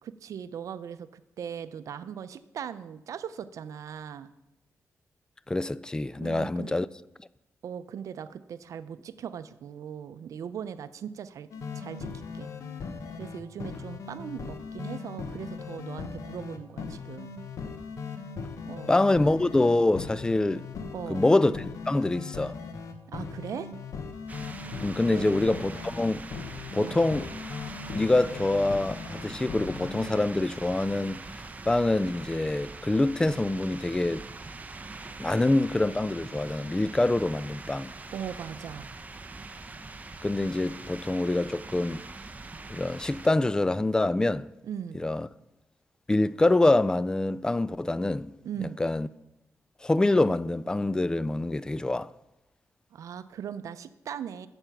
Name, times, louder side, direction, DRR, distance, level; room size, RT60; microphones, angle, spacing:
voice 1, 0.0-4.3 6.2-6.7 7.6-11.5 11.7-12.1 12.3-12.5 13.1-17.3 18.6-18.9 20.9-21.2 23.1-23.7 25.1-25.4 26.8-27.0 38.1-38.9 44.6-45.0 48.4-48.8 52.9-54.5, right 8 dB, 75° right, 0.6 m, -39 dB
voice 2, 5.5-6.9 18.9-20.7 21.1-22.6 24.8-26.3 26.7-27.3 27.9-31.2 31.7-34.2 35.2-37.9 40.2-42.0 42.7-44.5 44.9-45.3 46.1-48.3 48.8-49.1 49.8-52.1, left 2 dB, 15° left, 0.3 m, -25 dB
sound 1, 11.5-30.2, left 5 dB, 75° left, 1.1 m, -39 dB
sound 2, 24.3-43.3, right 3 dB, 25° right, 0.8 m, -43 dB
8.9 x 7.9 x 5.9 m
cardioid pair, 90°, 6 cm